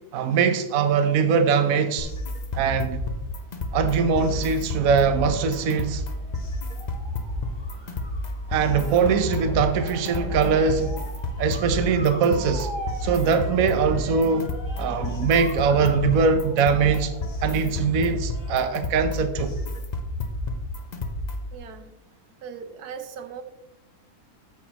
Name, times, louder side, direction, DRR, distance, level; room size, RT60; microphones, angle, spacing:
voice 1, 0.1-2.1 2.5-3.0 3.7-6.0 8.5-10.9 11.4-12.7 13.0-14.5 14.8-17.1 17.4-19.5, right 6 dB, 65° right, 1.2 m, -22 dB
sound 1, 2.0-21.6, left 1 dB, 35° left, 0.8 m, -31 dB
sound 2, 4.8-18.8, equal, 20° left, 1.4 m, -42 dB
voice 2, 21.5-21.9 22.4-23.4, right 6 dB, 85° right, 1.3 m, -38 dB
13.5 x 6.0 x 3.0 m
omnidirectional pair, 1.6 m